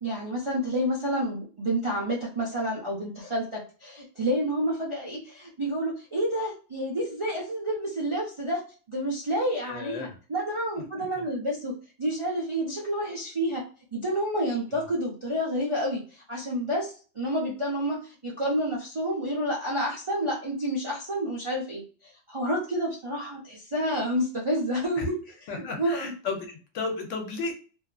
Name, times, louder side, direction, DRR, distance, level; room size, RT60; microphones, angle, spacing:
voice 1, 0.0-8.6 8.9-11.7 12.0-13.6 13.9-21.8 22.3-25.2 25.5-26.1, equal, 40° right, -5 dB, 0.5 m, -29 dB
voice 2, 9.6-10.2 14.7-14.8 25.0-25.1 25.5-27.5, left 4 dB, 75° left, 4 dB, 1.0 m, -33 dB
2.7 x 2.3 x 2.3 m, 0.37 s
omnidirectional pair, 1.3 m